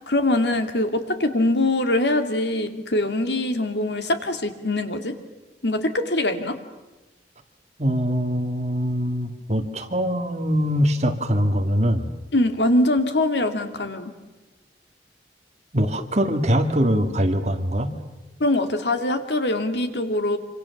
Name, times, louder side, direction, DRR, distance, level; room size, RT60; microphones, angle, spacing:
voice 1, 0.1-5.1 5.6-6.6 12.3-14.1 18.4-20.4, left 1 dB, 75° left, 7 dB, 2.5 m, -23 dB
voice 2, 7.8-12.1 15.7-18.0, equal, 40° right, 5 dB, 2.2 m, -23 dB
26.5 x 26.0 x 7.2 m, 1.1 s
head